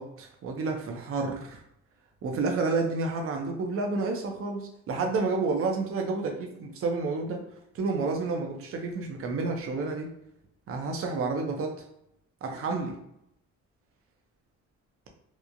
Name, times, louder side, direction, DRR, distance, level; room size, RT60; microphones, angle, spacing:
voice 1, 0.0-1.6 2.2-7.4 7.7-10.1 10.7-11.7 12.4-13.0, right 3 dB, 45° right, 2 dB, 0.6 m, -30 dB
2.9 x 2.1 x 2.4 m, 0.78 s
cardioid pair, 90°, 30 cm